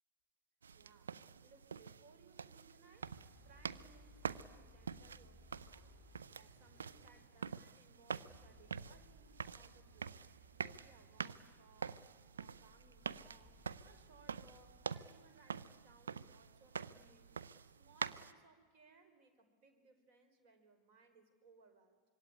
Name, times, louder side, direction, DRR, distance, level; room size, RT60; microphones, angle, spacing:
sound 1, 0.6-18.3, right 6 dB, 70° right, 0.7 m, -47 dB
voice 1, 0.7-12.1 12.3-17.3 17.6-22.0, right 4 dB, 45° right, 8 dB, 4.9 m, -66 dB
sound 2, 3.0-14.9, left 1 dB, 15° right, 3.6 m, -65 dB
26.0 x 23.5 x 9.9 m, 1.5 s
figure-of-eight pair, 90°, 0 cm